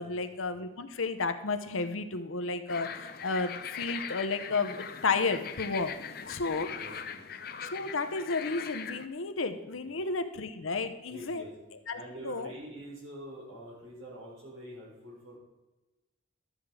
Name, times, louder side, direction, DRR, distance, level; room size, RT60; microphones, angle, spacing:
voice 1, 0.0-5.9 6.3-6.7 7.6-11.4 11.9-12.5, left 4 dB, 85° left, 9 dB, 0.9 m, -32 dB
sound 1, 2.7-9.1, left 7 dB, 50° left, 0.6 m, -41 dB
voice 2, 6.7-7.3 9.8-9.9 11.1-11.5 11.9-15.4, right 1 dB, 85° right, -3 dB, 4.2 m, -45 dB
12.5 x 7.6 x 4.9 m, 1.1 s
head